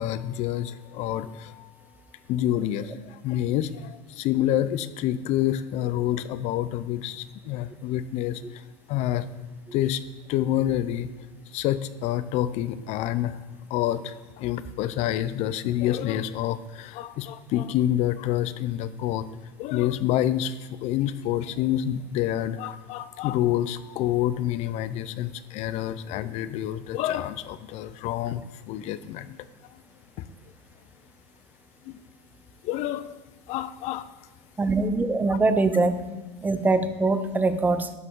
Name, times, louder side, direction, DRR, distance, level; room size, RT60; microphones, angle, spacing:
voice 1, 0.0-1.7 2.3-8.4 8.9-9.3 9.7-10.0 10.3-11.1 11.5-13.4 13.7-19.3 19.6-20.5 20.8-29.4 31.9-32.0 32.6-33.1 33.5-34.1, left 12 dB, 55° left, 15 dB, 0.6 m, -27 dB
voice 2, 34.6-36.2 36.4-37.9, right 3 dB, 10° right, 11 dB, 0.7 m, -23 dB
12.0 x 8.2 x 3.8 m, 1.3 s
supercardioid pair, 120°, 14 cm